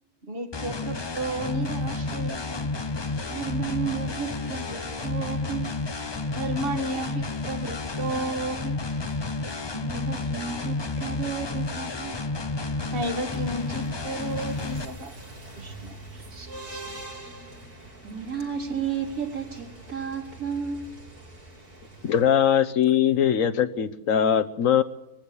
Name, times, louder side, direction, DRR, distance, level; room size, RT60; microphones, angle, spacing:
voice 1, 0.2-2.7 6.3-8.8 12.9-15.2 15.6-16.0, right 1 dB, 40° right, 1.6 m, -32 dB
sound 1, 0.5-14.9, left 3 dB, 30° left, 0.5 m, -31 dB
voice 2, 3.2-5.8 9.6-12.2 16.3-17.0 18.0-21.0 22.0-22.1, right 7 dB, 65° right, 4.4 m, -33 dB
sound 2, 12.8-22.2, right 2 dB, 85° right, 6.7 m, -44 dB
voice 3, 22.0-24.8, left 9 dB, 60° left, 1.2 m, -21 dB
21.5 x 15.0 x 8.4 m
omnidirectional pair, 1.6 m